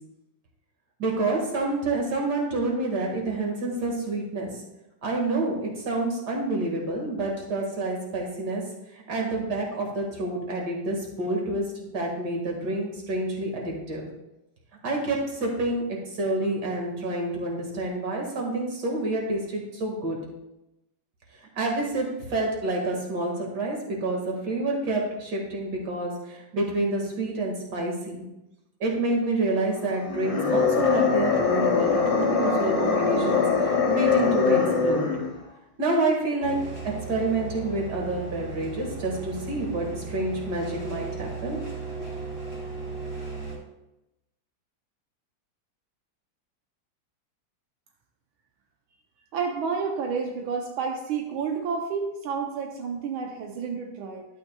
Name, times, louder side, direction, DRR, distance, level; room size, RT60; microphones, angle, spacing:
voice 1, 1.0-4.5 5.0-8.6 8.9-14.0 14.8-15.8 16.1-20.2 21.6-28.3 28.8-35.1 35.8-36.6 37.1-41.6, right 2 dB, 55° right, -1 dB, 2.3 m, -28 dB
sound 1, 30.0-35.4, left 5 dB, 65° left, 0.3 m, -23 dB
sound 2, 36.4-43.6, right 4 dB, 35° right, 3.2 m, -36 dB
voice 2, 49.3-54.2, right 5 dB, 85° right, 2 dB, 1.6 m, -30 dB
11.5 x 8.4 x 2.3 m, 0.93 s
omnidirectional pair, 2.2 m